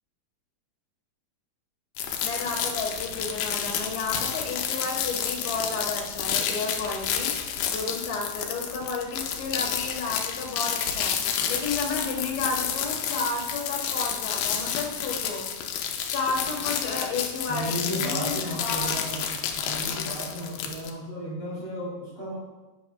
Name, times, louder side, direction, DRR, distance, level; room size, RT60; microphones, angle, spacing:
sound 1, 2.0-20.9, left 8 dB, 75° left, 2.4 m, -30 dB
voice 1, 2.0-15.5 16.1-19.0, left 4 dB, 55° left, -2 dB, 2.6 m, -32 dB
voice 2, 17.5-22.3, equal, 10° right, -8 dB, 1.8 m, -34 dB
11.0 x 9.1 x 2.4 m, 1.1 s
omnidirectional pair, 4.1 m